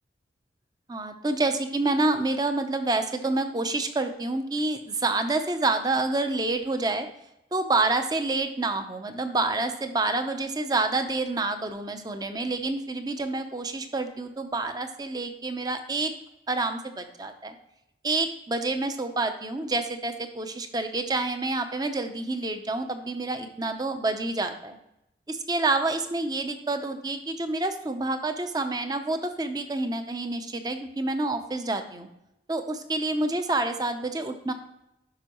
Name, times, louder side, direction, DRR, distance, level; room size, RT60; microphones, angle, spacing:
voice 1, 0.9-7.1 7.5-16.1 16.5-17.6 18.0-24.8 25.3-32.1 32.5-34.5, right 2 dB, 20° right, 8 dB, 0.6 m, -28 dB
11.5 x 5.3 x 3.0 m, 0.85 s
head